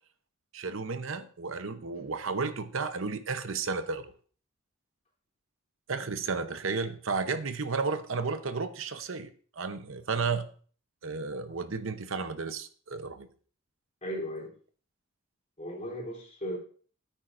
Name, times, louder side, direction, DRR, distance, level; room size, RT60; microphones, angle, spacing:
voice 1, 0.5-4.1 5.9-9.3 9.6-10.5 11.0-13.3, right 4 dB, 70° right, 10 dB, 0.8 m, -33 dB
voice 2, 14.0-14.5 15.6-16.6, equal, 35° left, -2 dB, 3.3 m, -36 dB
14.0 x 8.9 x 2.6 m, 0.44 s
head